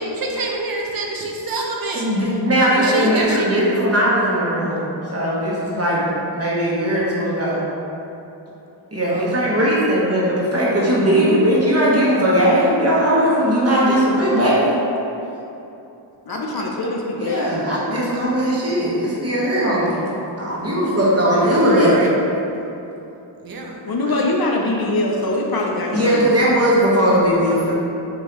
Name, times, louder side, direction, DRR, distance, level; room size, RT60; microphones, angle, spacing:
voice 1, 0.2-2.0 2.7-3.6 9.1-9.4 16.3-16.6 17.9-18.0 21.4-22.1 23.4-23.7 24.1-24.2 27.0-27.2 27.5-27.7, right 2 dB, 45° right, 0 dB, 0.7 m, -27 dB
voice 2, 1.9-6.0 6.3-7.6 8.9-14.7 17.2-20.0 20.4-22.1 25.9-27.7, equal, 30° right, -7 dB, 1.1 m, -18 dB
voice 3, 16.3-17.4 23.9-26.2, left 2 dB, 50° left, 0 dB, 0.5 m, -22 dB
5.1 x 2.6 x 3.0 m, 2.9 s
wide cardioid pair, 70°, 49 cm